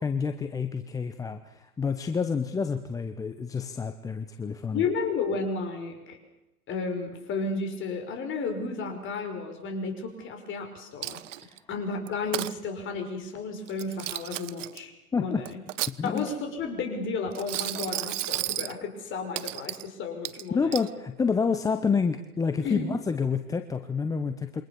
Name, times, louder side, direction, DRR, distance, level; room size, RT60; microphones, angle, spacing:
voice 1, 0.0-4.9 11.4-11.6 15.1-15.4 15.9-16.3 20.5-24.6, left 5 dB, 5° left, 8 dB, 0.8 m, -28 dB
voice 2, 4.7-6.2 6.7-11.2 11.7-15.6 16.0-20.7 22.6-22.9, left 4 dB, 25° left, 5 dB, 5.6 m, -32 dB
Coin (dropping), 11.0-11.6 12.1-12.5 13.7-14.8 15.5-16.4 17.3-18.8 19.4-19.9 20.2-20.9, right 15 dB, 50° right, 1.0 m, -33 dB
28.0 x 24.0 x 7.1 m, 0.98 s
hypercardioid pair, 125°, 46 cm